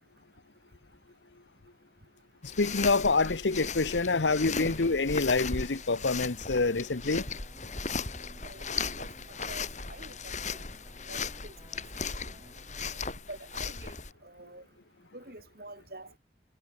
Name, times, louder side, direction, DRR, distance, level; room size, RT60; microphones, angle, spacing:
sound 1, 2.4-14.1, left 5 dB, 40° left, 4.1 m, -37 dB
voice 1, 2.6-7.3, left 3 dB, 80° left, 1.0 m, -26 dB
sound 2, 4.3-13.2, right 1 dB, 25° right, 6.9 m, -58 dB
voice 2, 8.4-9.1 9.5-10.3 11.1-11.5 11.9-12.4 13.3-14.0 14.2-14.6 15.1-16.2, right 2 dB, 55° right, 8.0 m, -47 dB
head